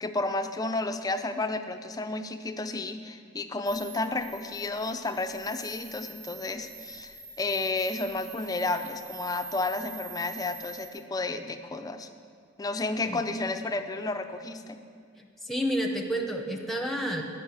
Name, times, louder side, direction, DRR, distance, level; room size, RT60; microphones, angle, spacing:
voice 1, 0.0-12.1 12.6-14.8, left 2 dB, 20° left, 8 dB, 0.4 m, -32 dB
sound 1, 3.7-10.9, right 5 dB, 40° right, 1.2 m, -46 dB
voice 2, 15.2-17.2, equal, ahead, 2 dB, 0.8 m, -30 dB
9.5 x 5.4 x 7.1 m, 2.3 s
head